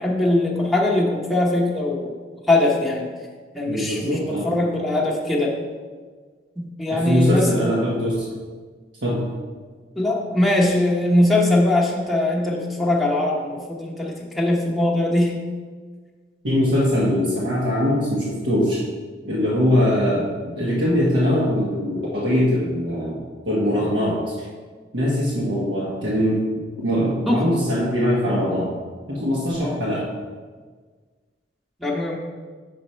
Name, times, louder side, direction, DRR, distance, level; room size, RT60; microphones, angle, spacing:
voice 1, 0.0-2.1 2.5-3.1 3.5-5.5 6.6-7.7 10.0-15.4 27.3-27.4 29.6-29.8 31.8-32.2, left 1 dB, ahead, -5 dB, 1.0 m, -21 dB
voice 2, 3.7-4.5 6.9-8.2 9.0-9.2 16.4-18.8 19.2-24.5 24.9-26.4 26.8-28.7 29.1-30.1, equal, 80° right, -7 dB, 1.2 m, -22 dB
6.1 x 5.0 x 4.3 m, 1.5 s
head